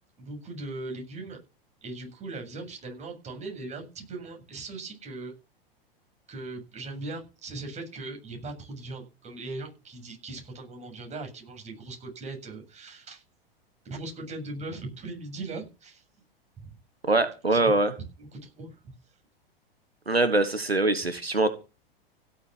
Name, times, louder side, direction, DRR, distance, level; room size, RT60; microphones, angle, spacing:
voice 1, 0.2-1.4 1.8-5.3 6.3-13.2 13.8-16.0 16.6-16.7 17.5-17.6 18.2-18.8, right 2 dB, 20° right, 3 dB, 7.8 m, -39 dB
voice 2, 17.1-17.9 20.1-21.5, right 2 dB, 90° right, 12 dB, 1.6 m, -23 dB
16.5 x 7.8 x 7.3 m, 0.30 s
figure-of-eight pair, 95°, 30 cm